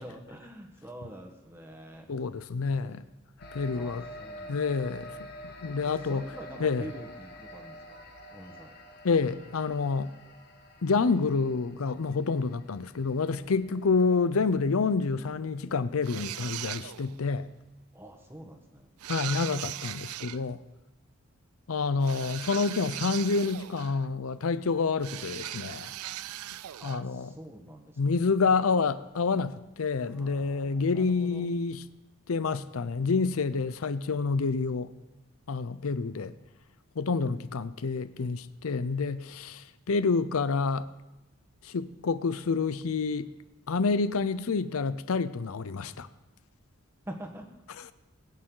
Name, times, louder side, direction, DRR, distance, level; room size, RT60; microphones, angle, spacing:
voice 1, 0.0-2.1 2.7-3.1 3.7-5.4 5.8-8.0 8.3-8.7 17.9-18.9 26.8-28.1 29.9-31.5 47.0-47.5, right 1 dB, 10° right, 1.3 m, -46 dB
voice 2, 2.1-3.0 3.5-4.0 4.5-5.1 5.4-6.2 6.6-6.8 9.0-10.1 10.8-17.5 19.1-20.6 21.7-25.9 26.8-27.3 28.0-31.8 32.3-34.9 35.5-36.3 37.0-40.9 41.6-43.3 43.7-46.1, left 4 dB, 80° left, 0.6 m, -28 dB
sound 1, 3.4-15.2, equal, 45° left, 1.5 m, -47 dB
sound 2, 16.0-17.2 19.0-20.4 22.0-24.1 25.0-27.0, right 14 dB, 90° right, 0.4 m, -39 dB
21.0 x 8.7 x 3.9 m
head